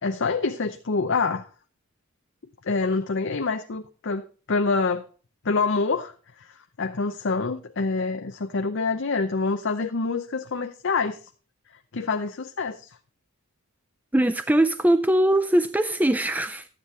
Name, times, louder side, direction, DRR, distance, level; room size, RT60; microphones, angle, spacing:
voice 1, 0.0-1.5 2.6-5.1 5.4-11.2 11.9-13.0, left 4 dB, 55° left, 6 dB, 0.7 m, -26 dB
voice 2, 14.1-16.7, right 1 dB, 5° right, 11 dB, 0.4 m, -21 dB
12.5 x 9.7 x 3.2 m, 0.37 s
head